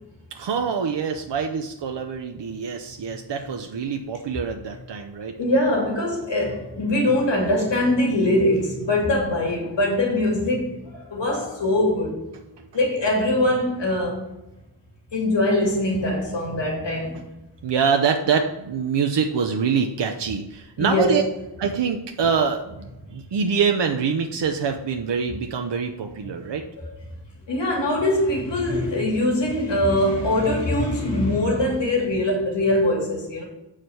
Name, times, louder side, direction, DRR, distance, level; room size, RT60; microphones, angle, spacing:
voice 1, 0.3-5.3 12.6-12.7 17.6-21.2 21.6-26.6, right 6 dB, 75° right, 4 dB, 0.7 m, -25 dB
voice 2, 5.4-12.2 12.7-14.3 15.1-17.3 20.8-21.2 26.8-26.9 27.5-33.4, left 1 dB, 80° left, -2 dB, 2.4 m, -22 dB
7.7 x 4.9 x 5.6 m, 0.96 s
wide cardioid pair, 125°, 42 cm